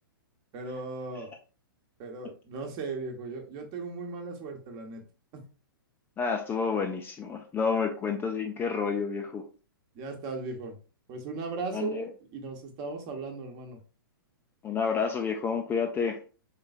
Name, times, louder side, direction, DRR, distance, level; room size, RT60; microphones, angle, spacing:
voice 1, 0.5-1.3 2.0-5.0 5.3-5.4 9.9-10.8 11.1-12.0 12.3-13.8, right 3 dB, 35° right, 2 dB, 1.1 m, -37 dB
voice 2, 6.2-9.4 11.7-12.1 14.6-16.2, left 5 dB, 15° left, 4 dB, 0.5 m, -29 dB
4.0 x 3.7 x 2.4 m, 0.35 s
hypercardioid pair, 120°, 12 cm